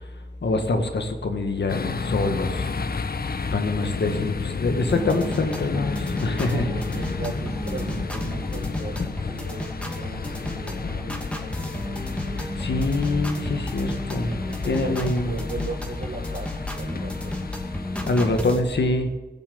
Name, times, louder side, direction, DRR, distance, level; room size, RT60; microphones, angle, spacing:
voice 1, 0.4-2.7 3.5-6.8 12.4-14.3 14.6-15.3 18.1-19.2, left 2 dB, 75° left, 6 dB, 1.7 m, -25 dB
sound 1, 1.7-18.5, left 4 dB, 55° left, 0.9 m, -31 dB
sound 2, 4.9-18.6, left 1 dB, 5° left, 2.4 m, -33 dB
voice 2, 6.5-12.5 14.2-17.5 17.9-18.6, right 4 dB, 65° right, 6 dB, 1.8 m, -38 dB
16.0 x 7.3 x 8.5 m, 1.2 s
cardioid pair, 45°, 18 cm